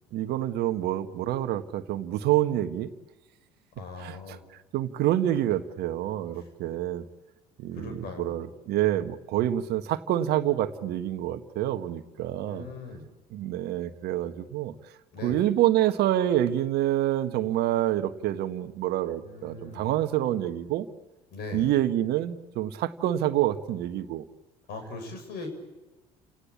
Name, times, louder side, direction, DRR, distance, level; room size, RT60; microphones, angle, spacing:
voice 1, 0.1-2.9 4.0-4.4 4.7-7.0 7.6-12.7 13.3-14.7 15.2-20.9 21.5-24.2, right 13 dB, 55° right, 10 dB, 1.5 m, -27 dB
voice 2, 3.8-4.4 7.7-8.3 12.4-13.1 15.1-15.4 19.2-19.9 21.3-21.7 24.7-25.5, left 3 dB, 55° left, 6 dB, 7.1 m, -40 dB
30.0 x 18.5 x 8.6 m, 1.1 s
figure-of-eight pair, 60°, 20 cm